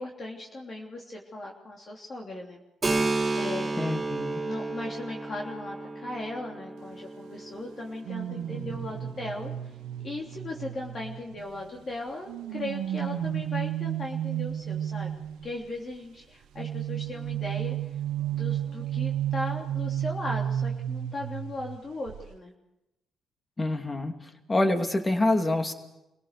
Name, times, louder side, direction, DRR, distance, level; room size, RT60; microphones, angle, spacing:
voice 1, 0.0-2.6 3.4-3.7 4.4-9.8 10.0-15.1 15.4-17.9 18.2-22.5, left 2 dB, 40° left, -1 dB, 3.2 m, -37 dB
Keyboard (musical), 2.8-10.2, right 3 dB, 25° right, 3.3 m, -33 dB
voice 2, 3.8-4.4 23.6-24.1 24.5-25.7, left 2 dB, 25° left, 5 dB, 2.6 m, -26 dB
sound 1, 8.0-11.7 12.3-15.5 16.6-21.8 22.1-22.3, right 11 dB, 85° right, 0.8 m, -32 dB
27.0 x 17.5 x 6.8 m, 0.93 s
cardioid pair, 90°, 0 cm